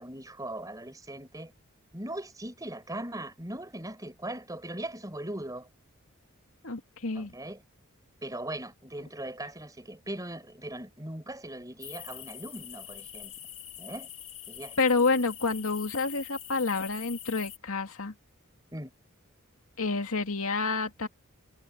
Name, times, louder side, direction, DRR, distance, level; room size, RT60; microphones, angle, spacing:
voice 1, 0.0-1.5 1.9-5.7 7.1-7.6 8.2-13.3 13.8-14.1 14.5-14.8 15.1-15.2 18.7-18.9, right 1 dB, 15° right, 5.1 m, -39 dB
voice 2, 6.6-7.3 14.8-18.1 19.8-21.1, left 3 dB, 75° left, 2.3 m, -28 dB
sound 1, 11.8-17.6, left 10 dB, 30° left, 3.8 m, -44 dB
head